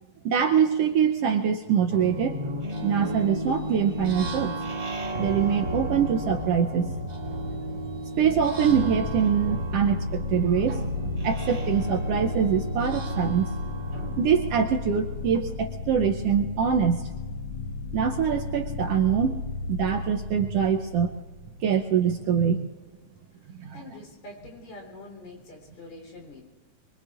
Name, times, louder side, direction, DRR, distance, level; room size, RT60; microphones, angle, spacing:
voice 1, 0.2-2.4 2.8-4.5 5.2-6.9 8.2-10.9 11.2-13.5 14.2-17.1 17.9-19.4 19.7-21.1 21.6-22.7 23.6-23.8, right 7 dB, 75° right, 6 dB, 1.5 m, -24 dB
sound 1, 1.9-15.5, equal, 30° right, 2.0 m, -34 dB
sound 2, 8.7-22.1, left 3 dB, 65° left, 1.5 m, -34 dB
voice 2, 23.7-26.4, left 2 dB, 80° left, 0 dB, 5.1 m, -45 dB
24.0 x 23.5 x 2.5 m, 1.4 s
omnidirectional pair, 3.3 m